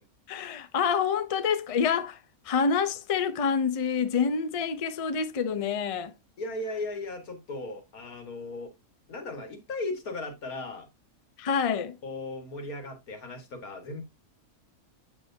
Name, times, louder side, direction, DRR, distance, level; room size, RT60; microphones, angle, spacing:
voice 1, 0.3-2.2 2.4-6.1 11.4-12.0, left 6 dB, 55° left, 0.3 m, -27 dB
voice 2, 6.4-8.7 9.1-10.9 12.0-14.0, left 2 dB, 85° left, 2.1 m, -36 dB
8.0 x 6.1 x 2.7 m
omnidirectional pair, 1.5 m